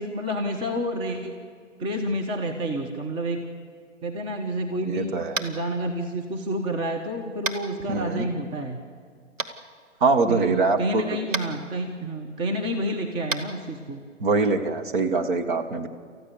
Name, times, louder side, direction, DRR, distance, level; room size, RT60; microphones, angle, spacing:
voice 1, 0.0-1.4 1.8-3.4 4.0-8.8 10.3-14.0, right 1 dB, 10° right, 3 dB, 1.2 m, -29 dB
voice 2, 4.8-5.4 7.9-8.3 10.0-11.1 14.2-15.9, right 3 dB, 40° right, 5 dB, 1.8 m, -23 dB
Tap, 5.3-5.6 7.4-7.6 9.4-9.5 11.3-11.5 13.3-13.4, right 3 dB, 80° right, 1.7 m, -28 dB
29.0 x 15.0 x 7.1 m, 2.1 s
figure-of-eight pair, 130°, 38 cm